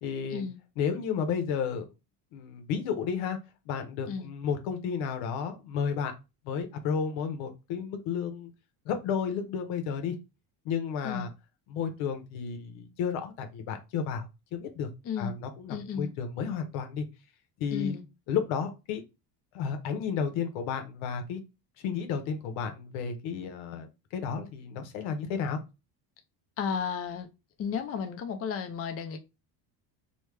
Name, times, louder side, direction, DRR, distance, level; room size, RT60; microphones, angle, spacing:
voice 1, 0.0-0.5 0.8-1.9 2.3-3.4 3.7-6.1 6.4-8.5 8.9-10.2 10.6-11.3 11.7-14.9 15.2-17.1 17.6-18.0 18.3-19.0 19.5-21.4 21.8-25.6, left 6 dB, 85° left, 7 dB, 0.9 m, -32 dB
voice 2, 15.7-16.1 17.7-18.0 26.6-27.3 27.6-29.2, left 6 dB, 30° left, 6 dB, 0.5 m, -33 dB
3.1 x 2.1 x 3.2 m, 0.26 s
cardioid pair, 130°, 46 cm